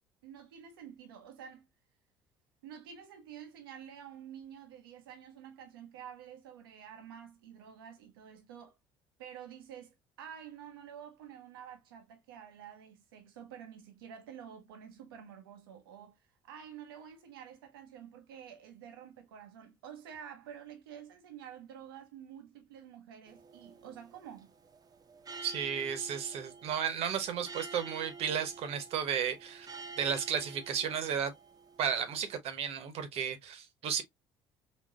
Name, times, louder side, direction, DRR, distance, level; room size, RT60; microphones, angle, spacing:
voice 1, 0.2-1.7 2.6-8.8 9.2-24.6, right 8 dB, 85° right, 0.8 m, -49 dB
sound 1, 23.3-32.4, right 3 dB, 35° right, 0.7 m, -50 dB
voice 2, 25.4-29.7 30.0-31.3 31.8-34.0, right 8 dB, 60° right, 1.0 m, -33 dB
4.2 x 2.8 x 2.4 m
hypercardioid pair, 65°, 12 cm